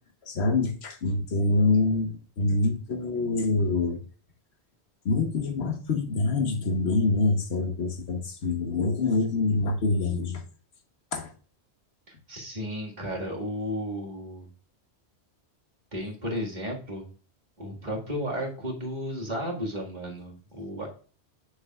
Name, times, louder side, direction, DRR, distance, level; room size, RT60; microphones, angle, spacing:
voice 1, 0.3-4.0 5.0-10.4 11.1-11.3, left 3 dB, 70° left, 5 dB, 1.4 m, -25 dB
voice 2, 12.1-14.5 15.9-17.1 17.6-20.9, equal, 40° right, -1 dB, 1.9 m, -33 dB
8.0 x 6.4 x 2.3 m, 0.39 s
omnidirectional pair, 1.1 m